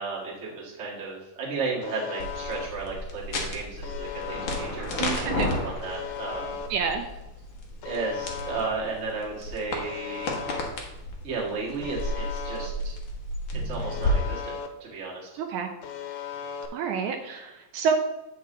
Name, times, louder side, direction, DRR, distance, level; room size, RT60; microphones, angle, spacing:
voice 1, 0.0-6.6 7.8-10.3 11.2-12.9 13.5-14.5 14.8-15.4, right 4 dB, 30° right, -4 dB, 1.4 m, -34 dB
Alarm, 1.8-2.7 3.8-4.7 5.8-6.7 7.8-8.7 9.8-10.7 11.8-12.7 13.8-14.7 15.8-16.7, left 8 dB, 85° left, 2.2 m, -36 dB
sound 1, 2.2-14.1, left 1 dB, 65° left, 1.2 m, -33 dB
voice 2, 5.0-5.5 6.7-7.1 15.4-15.7 16.7-18.0, right 6 dB, 80° right, 4 dB, 1.9 m, -28 dB
8.0 x 5.5 x 3.8 m, 1.0 s
omnidirectional pair, 3.8 m